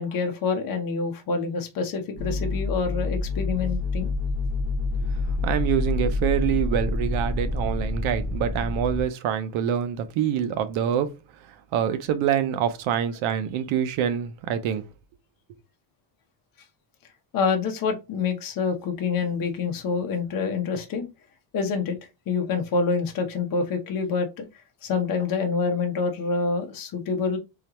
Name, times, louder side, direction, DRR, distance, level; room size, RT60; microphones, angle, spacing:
voice 1, 0.0-4.1 17.3-21.1 21.5-22.0 22.3-24.4 24.8-27.4, left 5 dB, 45° left, 1.1 m, -26 dB
sound 1, 2.2-9.0, left 2 dB, 30° right, 1.3 m, -27 dB
voice 2, 5.4-11.1 11.7-14.8, right 9 dB, 85° right, 0.9 m, -25 dB
3.8 x 3.2 x 3.0 m
cardioid pair, 170°, 46 cm